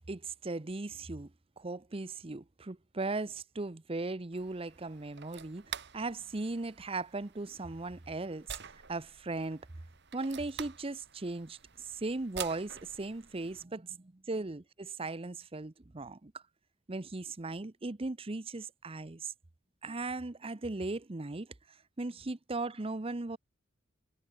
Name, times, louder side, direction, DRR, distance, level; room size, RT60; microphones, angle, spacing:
voice 1, 0.1-1.3 1.6-5.6 5.9-8.6 8.9-9.6 10.1-11.6 11.9-16.3 16.9-19.3 19.8-21.5 22.0-23.4, right 3 dB, 30° right, 0.8 m, -37 dB
sound 1, 4.3-13.6, right 8 dB, 60° right, 2.0 m, -48 dB
head